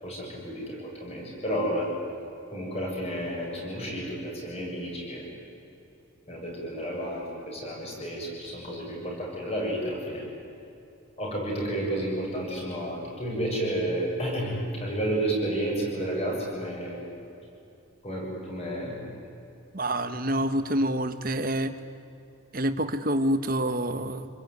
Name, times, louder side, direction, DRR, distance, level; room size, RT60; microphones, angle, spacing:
voice 1, 0.0-1.9 2.5-5.3 6.3-10.2 11.2-17.1 18.0-19.1, right 1 dB, 30° left, -2 dB, 7.5 m, -31 dB
voice 2, 19.7-21.7 22.5-24.3, right 1 dB, 40° right, 9 dB, 1.4 m, -27 dB
28.0 x 21.0 x 9.6 m, 2.8 s
head